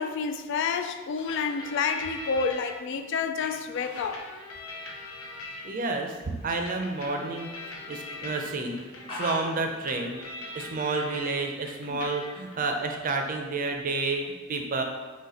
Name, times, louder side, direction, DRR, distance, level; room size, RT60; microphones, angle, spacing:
voice 1, 0.0-4.2 11.9-12.0, left 5 dB, 60° left, 0.3 m, -29 dB
Fowl, 0.6-12.6, left 1 dB, 25° left, 1.0 m, -47 dB
sound 1, 1.3-2.7 3.4-6.0 6.6-11.3 11.6-12.6, left 2 dB, 90° left, 0.8 m, -41 dB
voice 2, 5.6-14.2 14.5-14.8, right 3 dB, 40° right, 0.5 m, -30 dB
4.0 x 3.1 x 4.2 m
head